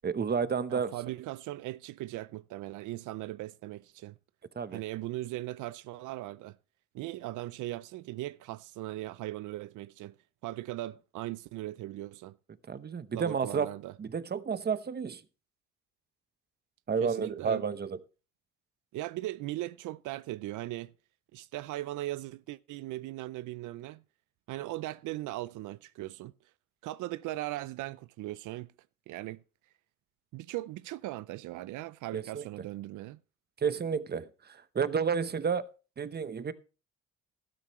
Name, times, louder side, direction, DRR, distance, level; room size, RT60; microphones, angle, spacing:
voice 1, 0.0-0.9 4.6-4.8 12.7-13.7 14.0-15.2 16.9-18.0 32.1-32.4 33.6-35.7 36.0-36.5, right 6 dB, 35° right, 0.9 m, -31 dB
voice 2, 0.7-4.1 4.7-6.6 6.9-10.1 10.4-12.4 13.1-13.9 17.0-17.6 18.9-20.9 21.3-24.0 24.5-26.3 26.8-28.7 29.1-29.4 30.3-33.2, right 16 dB, 85° right, 0.5 m, -38 dB
12.5 x 12.0 x 3.1 m
cardioid pair, 90°, 30 cm